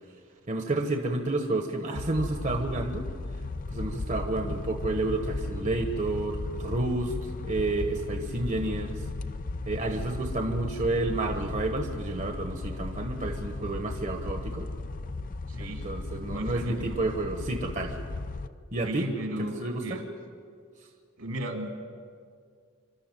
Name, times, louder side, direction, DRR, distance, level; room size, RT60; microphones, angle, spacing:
voice 1, 0.5-3.0 3.7-9.0 9.7-14.7 15.6-18.0 18.7-19.1 19.6-20.0, right 2 dB, 35° right, 4 dB, 1.2 m, -30 dB
sound 1, 1.9-18.5, left 2 dB, 40° left, 0.6 m, -36 dB
voice 2, 15.5-15.8 16.3-17.0 18.8-20.0 21.2-21.7, right 1 dB, 75° right, 3 dB, 2.7 m, -35 dB
27.0 x 12.5 x 9.1 m, 2.1 s
head